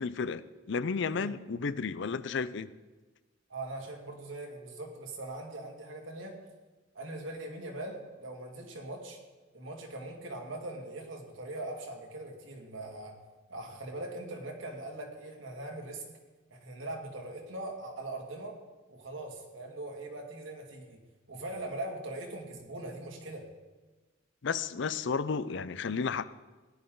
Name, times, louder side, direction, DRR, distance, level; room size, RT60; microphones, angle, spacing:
voice 1, 0.0-2.7 24.4-26.2, left 5 dB, 70° left, 15 dB, 0.5 m, -32 dB
voice 2, 3.5-6.4 6.9-9.2 9.5-13.1 13.5-16.0 16.5-18.6 18.9-23.5, right 2 dB, 85° right, 1 dB, 2.4 m, -41 dB
17.0 x 11.0 x 3.9 m, 1.2 s
head